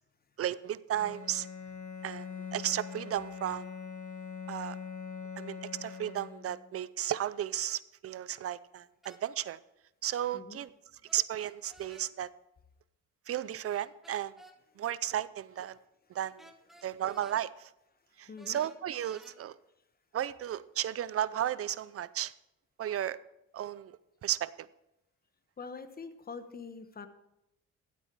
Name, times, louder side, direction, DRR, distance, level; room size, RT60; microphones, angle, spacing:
voice 1, 0.4-1.5 2.0-3.7 4.5-4.8 5.4-9.6 10.0-10.7 11.1-12.3 13.3-14.3 14.8-15.8 16.1-16.5 16.8-17.7 18.2-19.6 20.1-22.3 22.8-23.2 23.5-23.9 24.2-24.7, right 11 dB, 50° right, 18 dB, 0.5 m, -34 dB
Bowed string instrument, 0.9-6.7, left 6 dB, 75° left, 1.4 m, -43 dB
sound 1, 9.0-9.2 11.1-12.1 13.7-14.6 16.4-17.4 18.4-19.3, right 1 dB, ahead, 1.3 m, -55 dB
voice 2, 18.3-18.6 25.6-27.1, left 5 dB, 30° left, 10 dB, 1.1 m, -44 dB
12.5 x 8.4 x 4.6 m, 0.86 s
cardioid pair, 90°, 30 cm